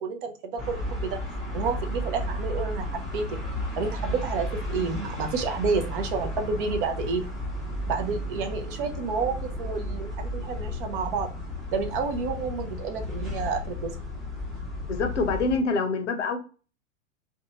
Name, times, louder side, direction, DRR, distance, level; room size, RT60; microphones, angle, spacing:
voice 1, 0.0-1.2 1.5-3.4 3.8-7.2 7.9-11.3 11.7-13.9, right 4 dB, 45° right, 0.5 m, -30 dB
sound 1, 0.6-15.6, left 1 dB, ahead, 0.6 m, -33 dB
voice 2, 14.9-16.4, left 3 dB, 65° left, 0.6 m, -26 dB
2.6 x 2.2 x 2.7 m
figure-of-eight pair, 90°, 39 cm